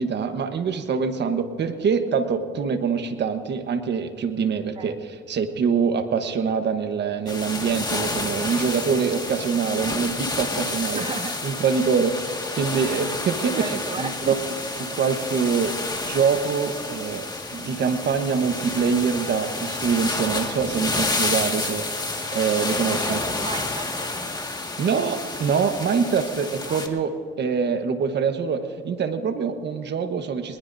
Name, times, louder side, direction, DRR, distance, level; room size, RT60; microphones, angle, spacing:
voice 1, 0.0-11.0 11.4-14.3 14.8-17.3 17.5-21.9 22.3-23.2 24.8-30.6, right 6 dB, 60° right, 8 dB, 1.3 m, -24 dB
sound 1, 7.3-26.9, left 2 dB, 20° left, 2.0 m, -30 dB
voice 2, 10.9-11.4 13.4-14.5 23.0-24.1 26.7-26.8, right 4 dB, 30° right, 7 dB, 1.0 m, -34 dB
23.0 x 20.5 x 2.7 m, 2.2 s
cardioid pair, 90°, 20 cm